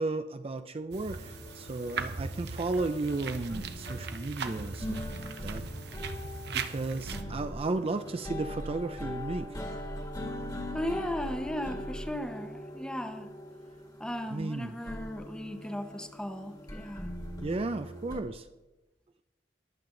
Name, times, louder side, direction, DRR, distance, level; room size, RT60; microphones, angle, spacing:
voice 1, 0.0-5.7 6.5-9.6 14.3-14.7 17.4-18.5, right 3 dB, 35° right, 9 dB, 0.4 m, -34 dB
sound 1, 0.9-7.2, right 4 dB, 65° right, 0.9 m, -39 dB
sound 2, 1.1-18.2, left 1 dB, 20° left, 1.7 m, -41 dB
voice 2, 10.7-13.3 14.0-17.1, left 1 dB, 5° left, 7 dB, 0.9 m, -36 dB
21.0 x 7.5 x 3.8 m, 1.1 s
head